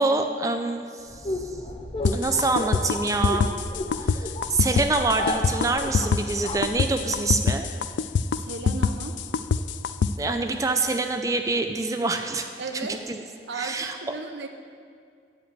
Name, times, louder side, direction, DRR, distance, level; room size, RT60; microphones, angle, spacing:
voice 1, 0.0-1.5 2.1-3.5 4.0-7.7 10.2-12.5 13.1-13.2 13.5-13.9, right 3 dB, 20° right, 6 dB, 0.4 m, -26 dB
sound 1, 1.1-7.3, left 1 dB, 30° left, 0.6 m, -33 dB
sound 2, 2.1-10.1, left 5 dB, 85° left, 0.3 m, -24 dB
voice 2, 8.3-9.2 12.6-13.0 13.5-14.5, right 3 dB, 80° right, 5 dB, 0.6 m, -35 dB
9.9 x 5.1 x 8.0 m, 2.2 s
head